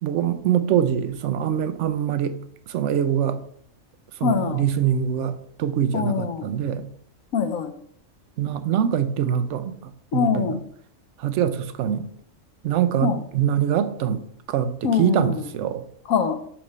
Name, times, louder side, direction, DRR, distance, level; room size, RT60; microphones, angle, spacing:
voice 1, 0.0-2.4 2.7-3.4 4.2-6.8 8.4-9.7 10.1-10.3 11.2-12.0 12.6-14.2 14.5-15.8, right 9 dB, 70° right, 11 dB, 0.8 m, -23 dB
voice 2, 4.2-4.6 5.9-6.5 7.3-7.7 10.1-10.6 13.0-13.2 14.8-15.5 16.1-16.4, left 6 dB, 90° left, 8 dB, 1.1 m, -23 dB
5.8 x 3.2 x 5.4 m, 0.64 s
omnidirectional pair, 1.4 m